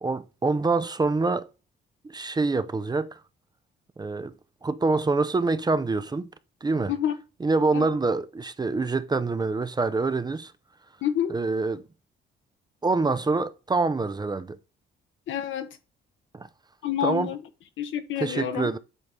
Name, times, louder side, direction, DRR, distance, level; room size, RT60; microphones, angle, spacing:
voice 1, 0.0-1.5 2.0-3.2 4.0-4.3 4.6-6.3 6.6-6.9 7.4-10.5 11.3-11.8 12.8-14.6 16.3-16.5 17.0-17.3 18.2-18.8, right 3 dB, 20° right, 0.5 m, -25 dB
voice 2, 11.0-11.4 15.3-15.8 16.8-17.4 17.8-18.7, left 10 dB, 75° left, 1.0 m, -28 dB
8.1 x 4.0 x 3.6 m
cardioid pair, 90°, 20 cm